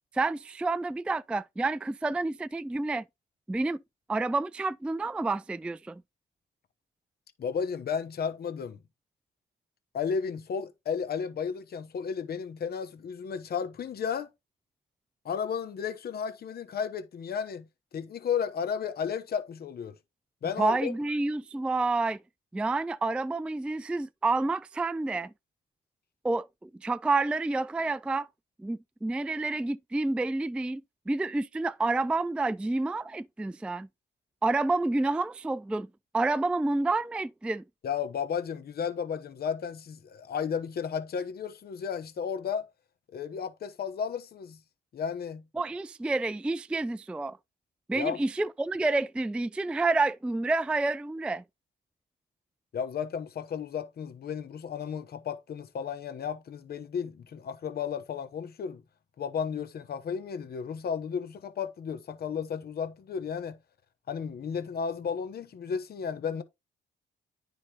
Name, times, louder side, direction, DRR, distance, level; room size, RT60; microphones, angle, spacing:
voice 1, 0.1-3.0 3.5-3.8 4.1-6.0 20.6-22.2 22.5-25.3 26.2-28.3 28.6-30.8 31.1-33.9 34.4-35.9 36.1-37.6 45.6-47.4 47.9-51.4, right 3 dB, 5° right, 0.3 m, -29 dB
voice 2, 7.4-8.8 9.9-14.3 15.2-17.7 17.9-20.0 20.4-20.9 37.8-42.7 43.1-44.6 44.9-45.4 47.9-48.2 52.7-58.8 59.2-63.6 64.1-66.4, left 7 dB, 50° left, 1.0 m, -33 dB
9.5 x 5.0 x 2.9 m
cardioid pair, 90°, 20 cm